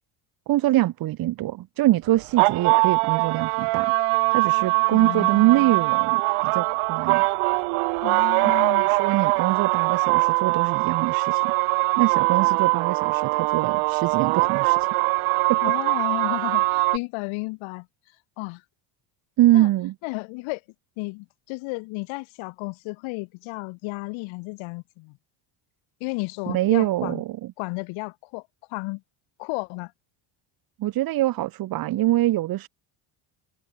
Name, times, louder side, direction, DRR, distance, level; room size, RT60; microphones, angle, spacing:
voice 1, 0.5-3.9 4.3-7.2 8.7-11.5 12.0-14.9 15.5-15.6 19.4-19.9 26.5-27.5 30.8-32.7, right 15 dB, 45° right, 2.0 m, -24 dB
sound 1, 2.1-17.0, right 30 dB, 90° right, 2.6 m, -22 dB
voice 2, 4.9-5.8 8.0-8.9 15.6-17.9 18.4-18.6 19.5-19.7 20.0-20.6 21.0-25.2 26.0-27.2 27.6-28.4 28.7-29.0 29.4-29.9, left 26 dB, 75° left, 1.9 m, -33 dB
cardioid pair, 165°, 47 cm